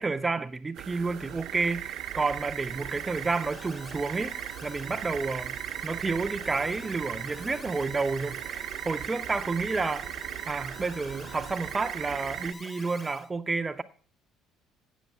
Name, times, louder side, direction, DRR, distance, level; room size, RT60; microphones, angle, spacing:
voice 1, 0.0-5.6 5.8-13.8, right 3 dB, 15° right, 0.5 m, -30 dB
sound 1, 0.7-12.5, right 12 dB, 65° right, 0.7 m, -38 dB
Alarm, 0.9-13.3, left 2 dB, 20° left, 0.8 m, -48 dB
9.2 x 6.3 x 7.3 m
cardioid pair, 145°, 0 cm